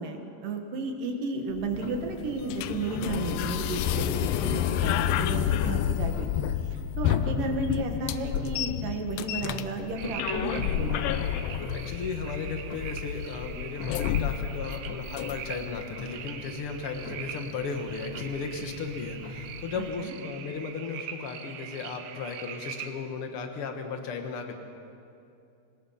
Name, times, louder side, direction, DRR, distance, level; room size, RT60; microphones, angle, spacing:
voice 1, 0.0-11.3 19.8-20.1, right 3 dB, 60° right, 4 dB, 3.1 m, -33 dB
Clock, 1.5-19.9, left 2 dB, 40° left, 1.9 m, -43 dB
sound 1, 1.7-15.7, left 11 dB, 80° left, 2.2 m, -30 dB
sound 2, 10.0-22.9, right 9 dB, 85° right, 3.2 m, -42 dB
voice 2, 11.7-24.6, left 5 dB, 60° left, 5 dB, 1.5 m, -35 dB
25.5 x 19.5 x 5.8 m, 2.6 s
omnidirectional pair, 4.7 m